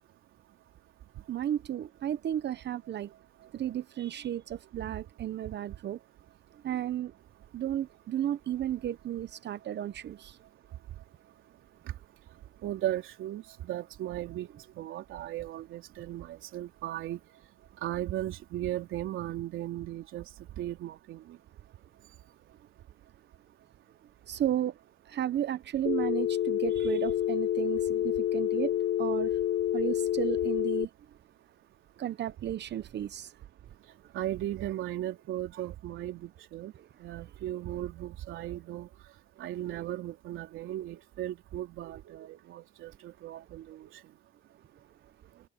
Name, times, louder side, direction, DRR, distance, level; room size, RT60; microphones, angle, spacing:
voice 1, 1.3-3.1 3.5-6.0 6.6-7.1 7.5-10.4 24.3-24.7 25.1-29.3 29.7-30.9 32.0-33.3, right 11 dB, 60° right, 0.9 m, -33 dB
voice 2, 12.6-14.5 14.8-17.2 17.8-20.2 20.6-21.2 34.1-36.7 37.0-38.9 39.4-43.9, right 13 dB, 85° right, 3.6 m, -36 dB
Telephone, 25.9-30.9, left 12 dB, 75° left, 1.1 m, -28 dB
cardioid pair, 90°, 20 cm